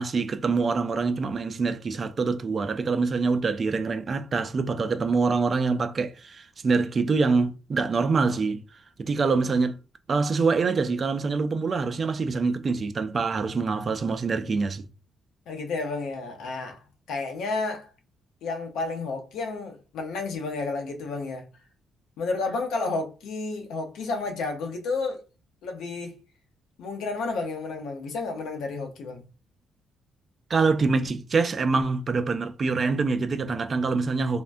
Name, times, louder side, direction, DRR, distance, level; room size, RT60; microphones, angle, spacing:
voice 1, 0.0-8.6 9.0-9.8 10.1-14.9 30.5-34.4, right 4 dB, 40° right, 0.3 m, -25 dB
voice 2, 15.5-17.9 18.4-21.5 22.2-25.2 25.6-26.2 26.8-29.2, left 3 dB, 80° left, 0.6 m, -31 dB
3.4 x 2.1 x 2.5 m
cardioid pair, 90°, 0 cm